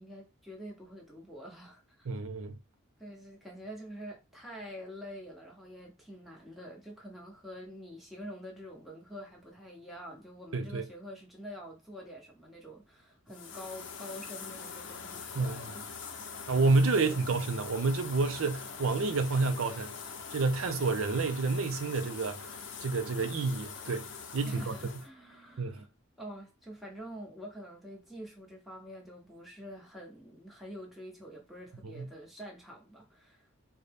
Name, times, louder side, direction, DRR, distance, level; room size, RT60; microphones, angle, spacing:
voice 1, 0.0-2.1 3.0-15.8 16.9-17.4 24.4-25.9 26.2-33.5, equal, ahead, 0.9 m, -46 dB
voice 2, 2.1-2.6 10.5-10.8 15.4-15.6 16.5-19.9 20.3-22.5 22.8-24.1 24.3-25.0 25.6-25.8 31.8-32.1, right 3 dB, 75° right, 0.5 m, -29 dB
sound 1, 13.3-25.1, left 5 dB, 55° left, 0.5 m, -43 dB
4.0 x 2.2 x 3.4 m
head